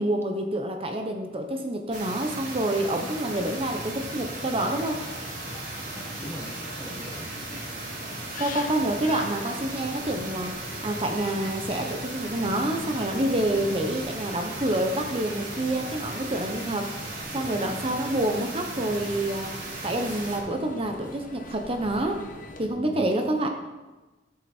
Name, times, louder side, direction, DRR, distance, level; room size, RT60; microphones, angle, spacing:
voice 1, 0.0-5.0 8.4-19.5 19.8-22.2 22.6-23.5, right 1 dB, 35° right, 4 dB, 1.0 m, -28 dB
sound 1, 1.9-20.4, right 2 dB, 50° right, 3.1 m, -37 dB
sound 2, 3.3-22.7, left 2 dB, 50° left, 1.2 m, -43 dB
voice 2, 5.9-7.3 12.7-13.1 17.3-17.8 22.7-23.1, equal, 15° left, 2 dB, 1.6 m, -41 dB
16.5 x 7.5 x 4.5 m, 1.2 s
head